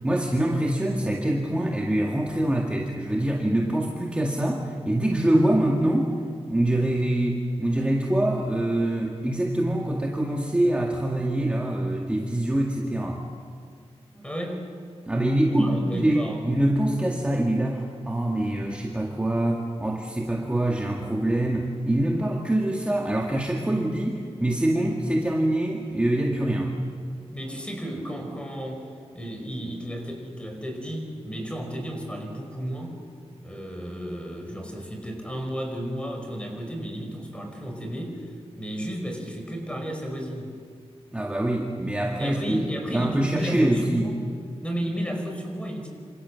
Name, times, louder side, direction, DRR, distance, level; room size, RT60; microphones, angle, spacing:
voice 1, 0.0-6.1 6.5-13.2 15.1-26.7 41.1-42.7 42.9-44.1, right 1 dB, 10° right, -1 dB, 2.0 m, -24 dB
voice 2, 14.1-14.6 15.6-16.5 27.3-28.9 29.1-33.0 33.4-40.6 42.2-44.2 44.6-45.9, equal, 10° left, 2 dB, 5.3 m, -33 dB
27.0 x 27.0 x 7.2 m, 2.2 s
wide cardioid pair, 160°, 11 cm